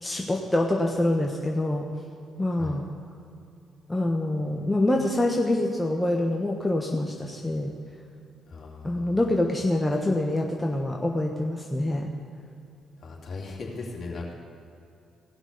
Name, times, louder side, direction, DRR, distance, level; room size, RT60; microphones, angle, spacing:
voice 1, 0.0-1.9 2.4-2.8 3.9-7.7 8.8-12.1, left 1 dB, 15° left, 1 dB, 1.2 m, -25 dB
voice 2, 8.5-9.2 13.0-14.3, left 3 dB, 50° left, -2 dB, 3.0 m, -38 dB
17.0 x 6.0 x 6.8 m, 2.6 s
hypercardioid pair, 45°, 0 cm